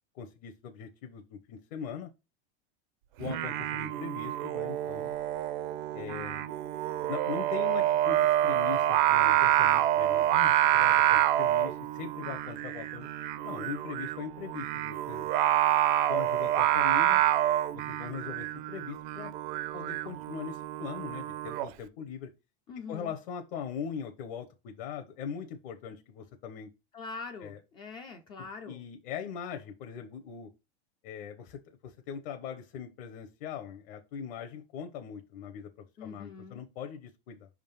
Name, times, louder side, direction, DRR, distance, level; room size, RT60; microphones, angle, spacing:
voice 1, 0.2-2.1 3.2-5.1 5.9-6.5 7.1-13.1 13.4-15.3 16.1-17.2 17.7-19.3 19.7-22.3 22.9-26.7 27.4-27.6 28.4-30.5 31.0-37.5, left 7 dB, 50° left, 0.8 m, -41 dB
Singing, 3.2-21.7, right 13 dB, 50° right, 0.6 m, -27 dB
voice 2, 22.7-23.1 26.9-28.8 36.0-36.6, left 4 dB, 15° left, 0.3 m, -43 dB
5.2 x 3.6 x 5.5 m
supercardioid pair, 160°, 32 cm